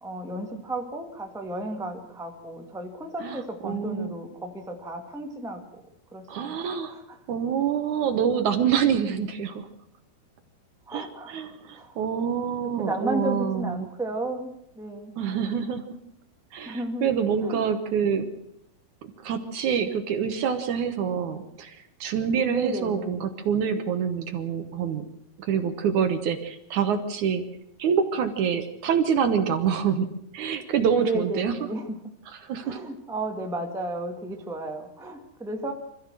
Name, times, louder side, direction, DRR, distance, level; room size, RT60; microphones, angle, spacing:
voice 1, 0.0-5.8 6.1-6.5 6.9-7.0 10.9-11.4 11.7-11.9 12.8-14.5 14.8-15.1 16.6-17.6 22.5-23.3 31.0-32.0 32.6-35.7, right 1 dB, 5° right, 3 dB, 0.5 m, -33 dB
voice 2, 3.2-4.2 6.3-7.0 7.3-9.7 10.9-13.9 15.2-15.8 16.5-18.3 19.0-25.1 25.4-27.4 27.8-30.1 30.3-31.6 32.3-32.8, right 7 dB, 65° right, 8 dB, 2.1 m, -26 dB
26.0 x 14.5 x 7.6 m, 0.79 s
omnidirectional pair, 4.5 m